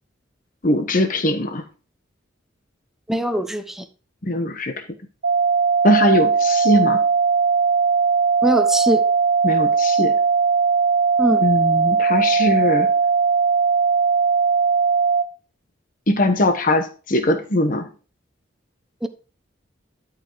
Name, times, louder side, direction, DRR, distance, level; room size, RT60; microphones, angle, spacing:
voice 1, 0.6-1.6 4.2-4.8 5.8-7.0 9.4-10.2 11.4-12.9 16.1-17.9, left 1 dB, 45° left, 1.2 m, -20 dB
voice 2, 3.1-3.9 8.4-9.0 11.2-11.4 19.0-19.1, right 1 dB, ahead, 0.9 m, -21 dB
sound 1, 5.2-15.2, right 5 dB, 75° right, 1.0 m, -18 dB
12.5 x 5.1 x 4.7 m
head